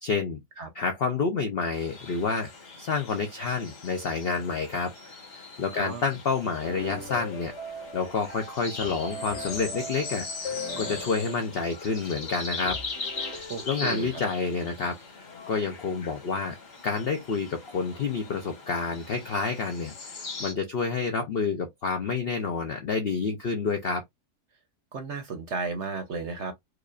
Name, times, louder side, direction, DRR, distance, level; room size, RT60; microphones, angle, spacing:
voice 1, 0.0-0.4 0.7-2.5 2.8-7.5 7.9-12.8 13.4-16.6 16.8-24.0, left 4 dB, 65° left, 0.6 m, -29 dB
sound 1, 1.7-20.5, left 4 dB, 85° left, 2.1 m, -40 dB
voice 2, 5.7-6.0 13.5-14.1 24.9-26.5, right 4 dB, 55° right, 0.8 m, -33 dB
sound 2, 6.6-14.3, left 1 dB, 40° left, 2.2 m, -40 dB
4.8 x 2.4 x 2.4 m
omnidirectional pair, 1.7 m